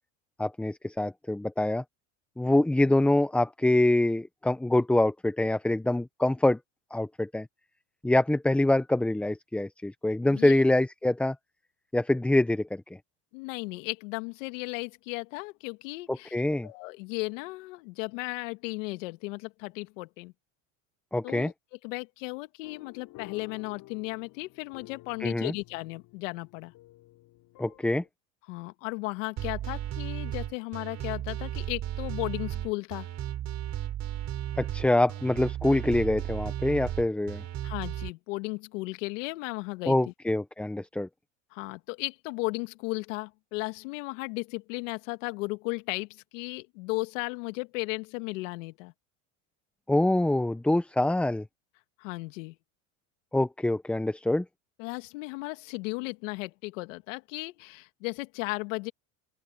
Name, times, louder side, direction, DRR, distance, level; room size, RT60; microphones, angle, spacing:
voice 1, 0.4-1.8 2.4-6.6 6.9-7.5 8.0-11.4 11.9-12.8 16.1-16.7 21.1-21.5 25.2-25.5 27.6-28.0 34.6-37.4 39.9-41.1 49.9-51.4 53.3-54.4, left 1 dB, 5° left, 0.5 m, -25 dB
voice 2, 10.2-10.6 13.3-16.4 16.6-20.3 21.2-21.5 21.8-26.7 28.5-33.1 37.6-40.0 41.5-48.9 52.0-52.6 54.8-58.9, left 25 dB, 80° left, 2.0 m, -35 dB
sound 1, 22.6-28.1, left 18 dB, 60° left, 4.3 m, -52 dB
sound 2, 29.4-38.1, right 12 dB, 45° right, 5.7 m, -34 dB
open air
supercardioid pair, 115°, 37 cm